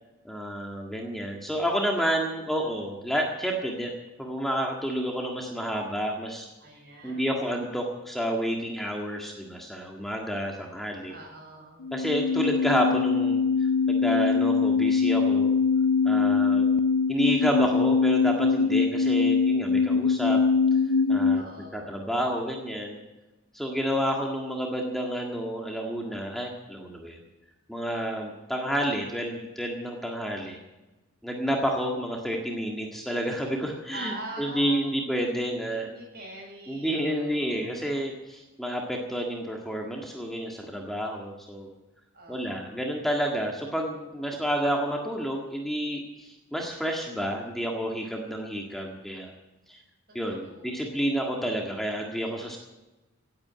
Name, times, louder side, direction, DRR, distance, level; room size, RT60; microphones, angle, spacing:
voice 1, 0.2-3.9 4.2-6.5 7.0-11.1 11.9-13.4 13.9-15.5 16.0-16.7 17.1-20.4 21.1-21.4 21.7-23.0 23.5-27.2 27.7-30.6 31.2-35.9 36.7-41.7 42.3-49.3 49.7-49.8 50.1-52.6, equal, ahead, 0 dB, 1.7 m, -30 dB
voice 2, 6.6-7.3 11.1-11.9 21.3-21.9 33.9-35.0 35.8-37.7 42.1-42.8 50.1-51.0, right 1 dB, 50° right, 0 dB, 7.2 m, -44 dB
sound 1, 11.8-21.4, left 5 dB, 90° left, 0.5 m, -23 dB
17.0 x 8.9 x 8.8 m, 1.1 s
head